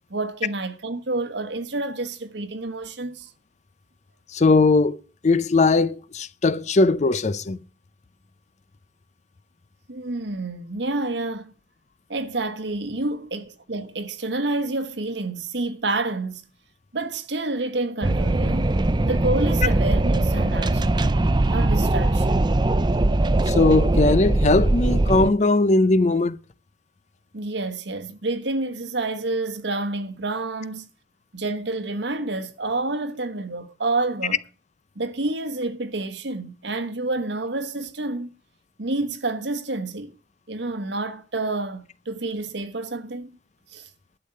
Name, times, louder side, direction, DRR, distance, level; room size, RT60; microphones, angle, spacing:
voice 1, 0.1-3.3 9.9-11.5 12.1-16.4 16.9-18.7 19.0-21.1 21.5-22.5 27.3-30.9 31.3-34.4 34.9-38.3 38.8-40.1 40.5-43.3 43.7-43.9, right 2 dB, 80° right, 1.3 m, -28 dB
voice 2, 4.3-5.0 5.2-7.6 23.5-26.4, left 3 dB, 40° left, 0.6 m, -19 dB
Wind, 18.0-25.3, right 2 dB, 25° right, 0.5 m, -21 dB
12.0 x 7.0 x 6.6 m
head